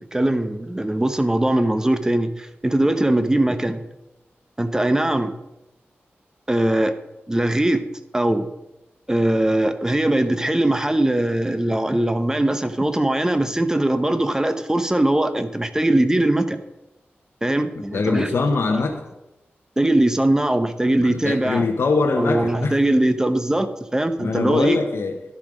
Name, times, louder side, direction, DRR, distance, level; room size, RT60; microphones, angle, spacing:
voice 1, 0.1-3.8 4.6-5.3 6.5-6.9 7.3-7.8 8.1-8.5 9.1-16.6 17.4-18.3 18.7-18.8 19.8-21.7 22.2-24.8, right 1 dB, 15° right, 10 dB, 0.8 m, -21 dB
voice 2, 17.9-19.1 20.9-22.8 24.2-25.2, left 3 dB, 75° left, 3 dB, 0.9 m, -22 dB
11.5 x 7.2 x 5.0 m, 0.95 s
wide cardioid pair, 90°, 4 cm